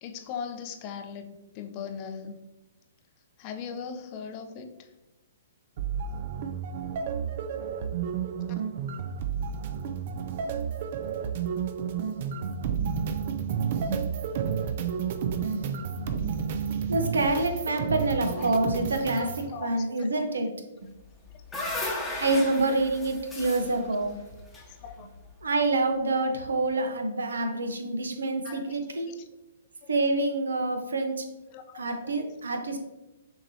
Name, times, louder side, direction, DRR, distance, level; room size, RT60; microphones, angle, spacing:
voice 1, 0.0-2.4 3.4-4.7 18.4-18.6 19.1-20.2 24.6-25.1 28.4-28.8 29.1-29.2 29.8-29.9 31.5-32.1, left 6 dB, 35° left, 7 dB, 0.5 m, -40 dB
sound 1, 5.8-19.5, right 7 dB, 55° right, 0.4 m, -31 dB
voice 2, 12.4-13.1 13.8-14.0 15.3-16.4 16.9-20.5 22.2-24.1 25.4-29.1 29.9-31.3 31.7-32.8, right 2 dB, 85° right, 5 dB, 0.7 m, -27 dB
sound 2, 21.0-25.3, left 2 dB, 10° left, 0.9 m, -36 dB
6.4 x 2.9 x 2.7 m, 1.0 s
hypercardioid pair, 135°, 0 cm